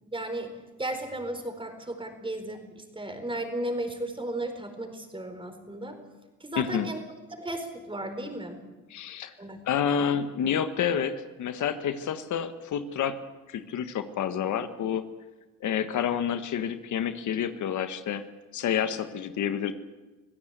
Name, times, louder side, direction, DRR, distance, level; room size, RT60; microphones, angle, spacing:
voice 1, 0.0-6.0 6.4-7.0 7.4-8.6 9.4-9.7, right 1 dB, 15° right, 7 dB, 4.4 m, -35 dB
voice 2, 6.5-6.9 8.9-9.3 9.7-13.2 13.5-15.0 15.6-18.2 18.5-19.7, left 8 dB, 75° left, 9 dB, 1.5 m, -29 dB
25.5 x 16.5 x 8.2 m, 1.2 s
cardioid pair, 90°, 30 cm